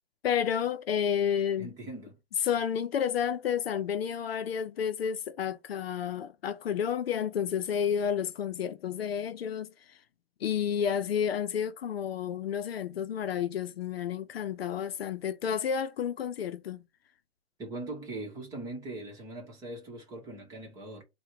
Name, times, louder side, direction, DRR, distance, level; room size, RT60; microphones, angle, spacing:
voice 1, 0.2-1.7 2.4-9.7 10.4-16.8, left 8 dB, 70° left, 0.6 m, -30 dB
voice 2, 1.6-2.2 17.6-21.0, right 2 dB, 10° right, 1.0 m, -40 dB
4.6 x 2.3 x 4.7 m
hypercardioid pair, 160°, 32 cm